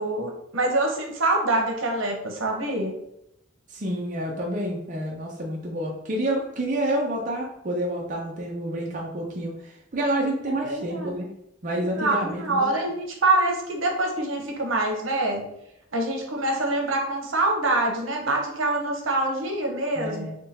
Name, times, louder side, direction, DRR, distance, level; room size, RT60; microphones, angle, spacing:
voice 1, 0.0-2.9 10.5-11.2 11.7-15.4 15.9-20.3, right 2 dB, 80° right, 1 dB, 0.9 m, -25 dB
voice 2, 3.7-9.5 9.9-11.3 11.6-12.7 20.0-20.4, right 1 dB, 40° right, -2 dB, 0.6 m, -28 dB
3.7 x 2.3 x 4.1 m, 0.82 s
head